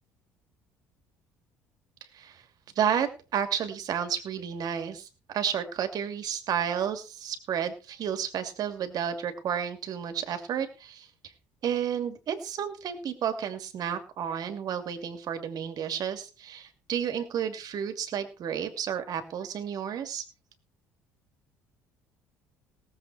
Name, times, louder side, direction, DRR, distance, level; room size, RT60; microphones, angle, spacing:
voice 1, 2.8-11.1 11.6-20.2, right 8 dB, 55° right, 8 dB, 2.6 m, -31 dB
18.5 x 7.7 x 4.6 m, 0.32 s
hypercardioid pair, 60°, 8 cm